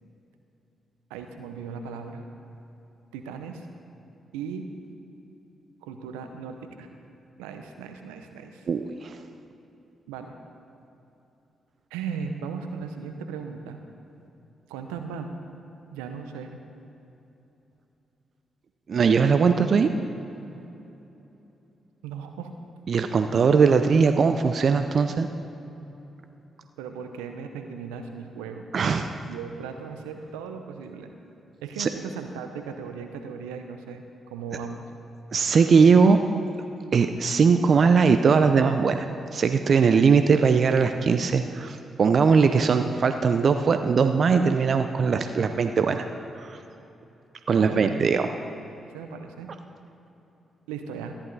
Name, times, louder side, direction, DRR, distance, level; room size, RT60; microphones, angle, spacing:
voice 1, 1.1-2.3 3.1-3.7 4.3-4.7 5.8-6.9 7.4-8.6 10.1-10.3 11.9-13.8 14.7-15.4 15.9-16.6 22.0-22.5 26.8-28.6 29.2-31.1 31.6-34.9 47.5-48.1 48.9-49.5 50.7-51.1, right 6 dB, 85° right, 6 dB, 0.7 m, -37 dB
voice 2, 8.7-9.2 18.9-19.9 22.9-25.3 28.7-29.1 31.8-31.9 35.3-36.2 36.9-46.0 46.3-46.6 47.5-48.3, right 5 dB, 55° right, 8 dB, 0.5 m, -20 dB
13.5 x 11.0 x 4.1 m, 3.0 s
hypercardioid pair, 45°, 0 cm